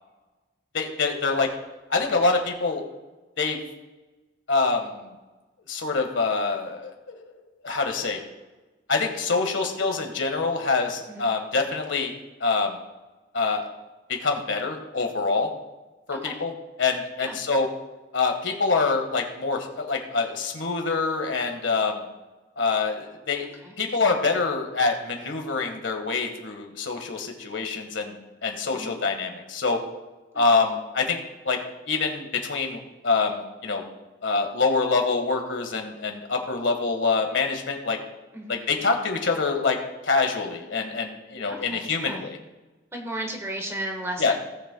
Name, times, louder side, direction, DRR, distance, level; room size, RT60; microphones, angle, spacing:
voice 1, 0.7-1.5 1.9-2.8 3.4-3.6 4.5-5.1 5.7-7.3 7.6-8.2 8.9-12.1 12.4-12.8 13.3-13.7 14.1-15.5 16.1-16.5 16.8-17.7 18.1-22.0 22.6-23.5 23.8-29.8 30.3-31.2 31.4-31.6 31.9-33.8 34.2-38.0 38.5-39.8 40.0-42.4 44.2-44.3, left 4 dB, 80° left, 3 dB, 1.6 m, -25 dB
voice 2, 41.5-42.3 42.9-44.3, right 1 dB, 15° right, 1 dB, 1.4 m, -34 dB
17.5 x 7.9 x 2.3 m, 1.2 s
head